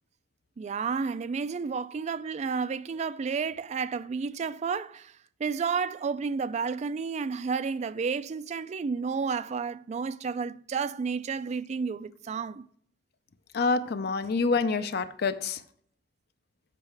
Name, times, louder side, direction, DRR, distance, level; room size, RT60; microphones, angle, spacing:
voice 1, 0.6-5.1 5.4-12.7, right 5 dB, 40° right, 0.3 m, -31 dB
voice 2, 13.5-15.6, left 4 dB, 60° left, 0.5 m, -27 dB
7.6 x 5.3 x 4.7 m
head